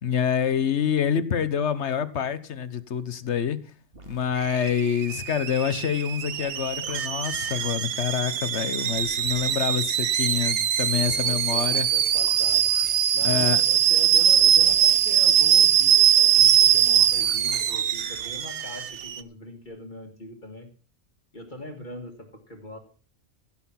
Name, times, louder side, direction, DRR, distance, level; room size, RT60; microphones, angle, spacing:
voice 1, 0.0-3.6 4.1-11.9 13.2-13.6, left 8 dB, 70° left, 1.3 m, -26 dB
sound 1, 3.9-4.3 6.3-7.7 9.0-9.7 11.7-13.0 14.3-15.0 17.0-18.3 19.7-19.8, right 3 dB, 55° right, 2.5 m, -47 dB
Alarm / Boiling, 4.4-19.2, right 9 dB, 75° right, 1.1 m, -22 dB
voice 2, 11.0-12.7 13.1-20.7 21.3-22.8, left 1 dB, 40° left, 2.1 m, -41 dB
16.0 x 7.8 x 5.9 m
omnidirectional pair, 1.2 m